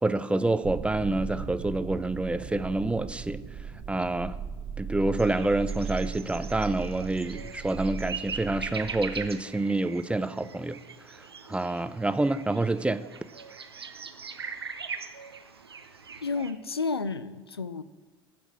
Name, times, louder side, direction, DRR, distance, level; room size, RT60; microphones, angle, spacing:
voice 1, 0.0-3.4 3.9-4.4 4.8-10.8 11.5-13.0, right 2 dB, 10° right, 0.7 m, -27 dB
sound 1, 0.6-9.3, right 6 dB, 45° right, 1.4 m, -37 dB
sound 2, 5.2-16.5, right 5 dB, 85° right, 0.7 m, -41 dB
voice 2, 16.2-17.8, left 4 dB, 90° left, 0.5 m, -31 dB
15.0 x 6.0 x 8.3 m
figure-of-eight pair, 65°, 13 cm